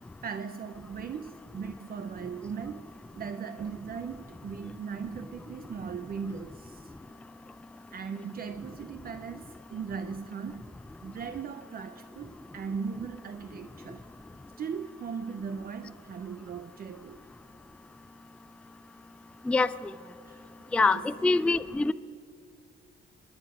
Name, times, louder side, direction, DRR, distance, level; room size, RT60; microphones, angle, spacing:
voice 1, 0.2-2.8 3.1-6.9 7.9-10.7 11.0-14.0 14.6-17.2 20.2-20.4 20.8-21.0, right 6 dB, 50° right, 10 dB, 0.6 m, -38 dB
voice 2, 20.7-21.9, left 3 dB, 5° left, 13 dB, 0.3 m, -24 dB
21.0 x 9.6 x 5.5 m, 2.5 s
cardioid pair, 90°, 20 cm